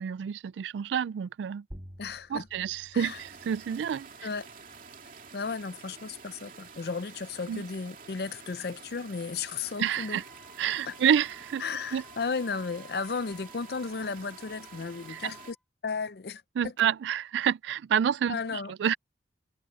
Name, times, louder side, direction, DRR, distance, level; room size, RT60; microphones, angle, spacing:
voice 1, 0.0-1.6 2.3-4.3 7.5-7.6 9.8-10.2 10.6-11.6 11.9-12.0 15.1-15.3 16.6-19.0, right 8 dB, 75° right, 0.3 m, -28 dB
sound 1, 1.7-6.8, equal, 25° right, 1.9 m, -53 dB
voice 2, 2.0-2.5 2.9-3.2 4.2-4.5 5.3-10.2 10.9-11.0 11.6-15.6 15.8-16.7 18.3-18.7, left 5 dB, 55° left, 0.5 m, -34 dB
sound 2, 3.0-15.5, right 5 dB, 45° right, 2.8 m, -49 dB
Wind instrument woodwind instrument, 9.9-15.6, equal, ahead, 2.6 m, -55 dB
head